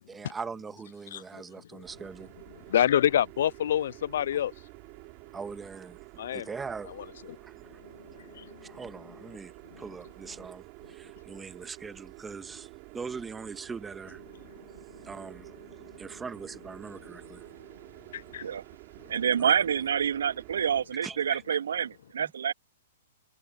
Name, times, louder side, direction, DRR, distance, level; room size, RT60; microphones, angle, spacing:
voice 1, 0.1-2.3 5.3-6.0 6.3-6.9 7.4-7.8 8.6-9.5 9.8-12.7 12.9-14.2 15.0-15.5 16.0-17.4 19.4-19.5 21.0-21.2, right 5 dB, 10° right, 1.9 m, -41 dB
sound 1, 1.8-20.8, right 35 dB, 40° right, 5.3 m, -49 dB
voice 2, 2.7-4.5 6.2-6.5 7.0-7.4 8.3-8.5 18.1-18.4, left 10 dB, 60° left, 0.3 m, -26 dB
voice 3, 19.1-22.5, right 8 dB, 65° right, 3.0 m, -27 dB
figure-of-eight pair, 110°, 0 cm